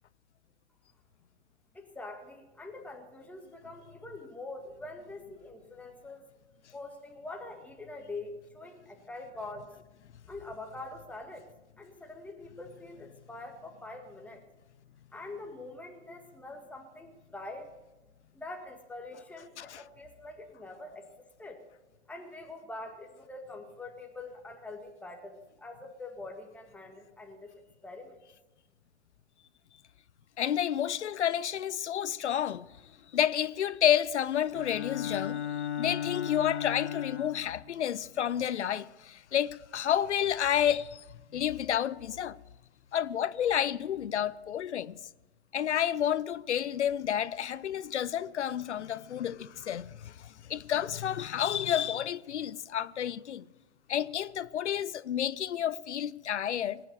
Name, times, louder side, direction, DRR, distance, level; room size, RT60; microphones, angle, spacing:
voice 1, 1.7-6.3 6.7-9.7 10.3-11.4 11.8-14.4 15.1-17.7 18.3-21.1 21.4-21.6 22.1-27.5 27.8-28.2, left 2 dB, 5° left, 1.8 m, -44 dB
voice 2, 30.4-32.7 33.1-41.0 41.3-42.4 42.9-45.0 45.5-53.4 53.9-56.8, left 10 dB, 90° left, 0.6 m, -30 dB
Bowed string instrument, 34.5-37.6, left 10 dB, 70° left, 2.0 m, -35 dB
20.0 x 9.0 x 6.8 m
hypercardioid pair, 115°, 34 cm